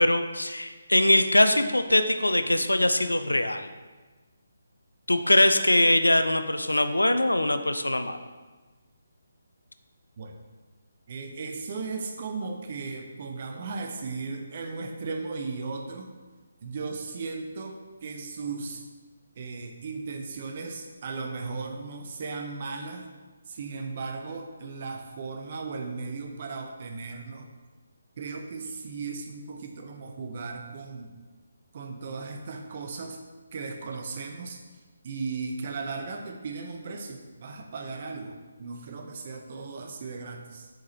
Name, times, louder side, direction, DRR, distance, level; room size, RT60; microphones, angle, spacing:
voice 1, 0.0-3.7 5.1-8.2, left 1 dB, 75° left, 9 dB, 0.4 m, -22 dB
voice 2, 11.1-16.1 16.6-18.8 19.4-23.1 23.5-27.5 28.2-31.1 31.7-33.2 33.5-34.6 35.0-40.7, right 4 dB, 40° right, 4 dB, 0.6 m, -36 dB
7.3 x 4.7 x 2.9 m, 1.3 s
figure-of-eight pair, 145°, 0 cm